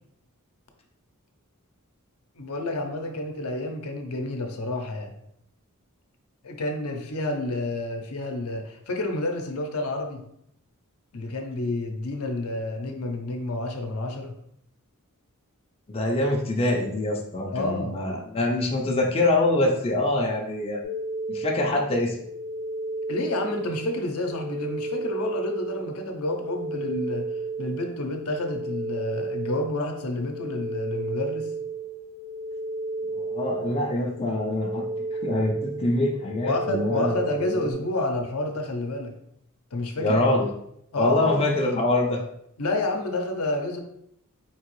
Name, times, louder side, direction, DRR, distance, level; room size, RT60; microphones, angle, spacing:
voice 1, 2.4-5.1 6.4-10.2 11.1-14.3 17.5-18.0 23.1-27.3 27.6-31.5 36.4-39.1 39.7-40.2 40.9-41.4 42.6-43.8, left 2 dB, 75° left, 4 dB, 0.6 m, -29 dB
voice 2, 15.9-20.8 21.3-22.2 33.1-34.9 35.2-37.1 37.4-37.7 40.0-40.5 41.0-42.2, left 2 dB, 25° left, 0 dB, 0.5 m, -25 dB
sound 1, 20.8-37.7, right 3 dB, 90° right, 1.5 m, -33 dB
4.6 x 2.9 x 3.0 m, 0.75 s
head